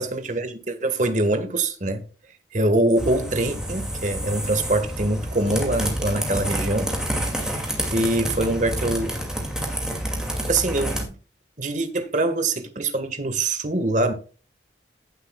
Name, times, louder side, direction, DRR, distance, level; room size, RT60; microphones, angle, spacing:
voice 1, 0.0-2.0 2.5-6.9 7.9-9.2 10.2-11.1 11.6-14.1, right 2 dB, 45° right, 1.6 m, -24 dB
sound 1, 3.0-11.0, right 1 dB, 5° right, 2.4 m, -28 dB
16.0 x 7.9 x 2.4 m
head